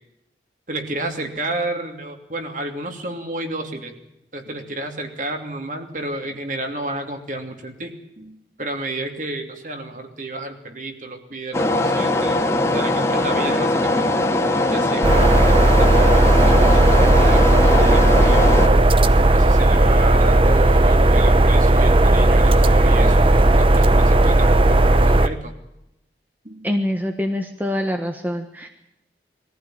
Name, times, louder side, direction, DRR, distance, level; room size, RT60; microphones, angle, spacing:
voice 1, 0.7-3.9 4.3-14.1 14.7-18.6 19.3-25.5 26.4-26.7, right 2 dB, 45° right, 4 dB, 2.9 m, -31 dB
sound 1, 11.5-18.7, left 2 dB, 15° left, 2.2 m, -20 dB
sound 2, 15.0-25.3, right 1 dB, 30° right, 0.8 m, -14 dB
voice 2, 26.6-28.7, left 1 dB, 10° right, 4 dB, 1.3 m, -25 dB
21.5 x 15.0 x 9.0 m, 0.87 s
head